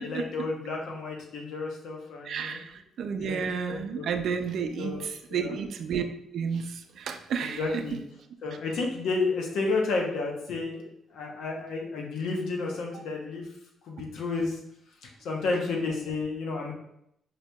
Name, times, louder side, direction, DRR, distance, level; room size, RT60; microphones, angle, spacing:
voice 1, 0.0-2.6 3.1-4.1 4.8-5.5 7.4-8.0 8.4-10.8 11.1-13.5 13.8-14.6 15.0-16.7, left 3 dB, 80° left, 0 dB, 0.8 m, -31 dB
voice 2, 2.3-6.0 6.3-7.6, right 6 dB, 65° right, 7 dB, 0.3 m, -31 dB
4.8 x 2.6 x 2.2 m, 0.76 s
cardioid pair, 90°, 0 cm